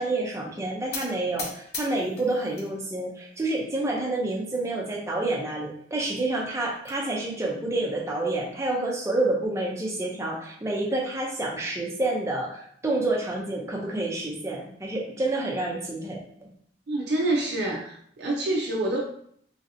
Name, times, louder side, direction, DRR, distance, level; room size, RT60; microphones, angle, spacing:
voice 1, 0.0-16.2, right 2 dB, 15° right, -1 dB, 0.5 m, -28 dB
sound 1, 0.9-2.7 3.1-3.7 4.3-4.4 4.7-4.8 5.1-5.2 6.3-7.0, left 4 dB, 55° left, 0.6 m, -39 dB
voice 2, 16.9-19.0, right 2 dB, 65° right, -2 dB, 0.5 m, -27 dB
3.1 x 2.7 x 2.6 m, 0.64 s
head